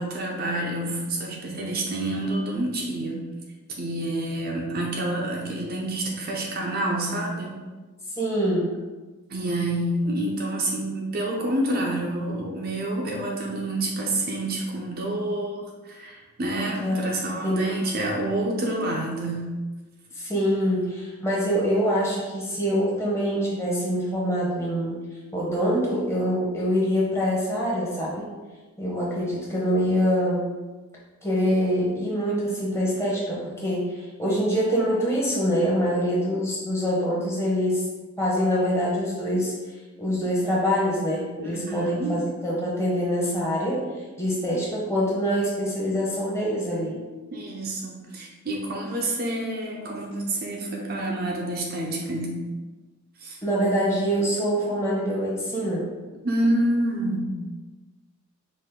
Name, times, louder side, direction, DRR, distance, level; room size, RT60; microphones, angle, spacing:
voice 1, 0.0-3.3 3.8-7.6 9.3-19.5 41.4-42.2 47.3-52.4 53.2-53.4 56.2-57.4, right 1 dB, 45° right, -1 dB, 0.5 m, -28 dB
voice 2, 8.2-8.7 16.8-17.1 17.4-18.0 20.1-25.0 25.3-28.2 28.8-30.5 31.2-37.8 38.2-39.5 40.0-43.9 44.2-47.0 53.4-55.8, equal, 10° left, -5 dB, 1.0 m, -25 dB
5.4 x 2.5 x 3.6 m, 1.3 s
head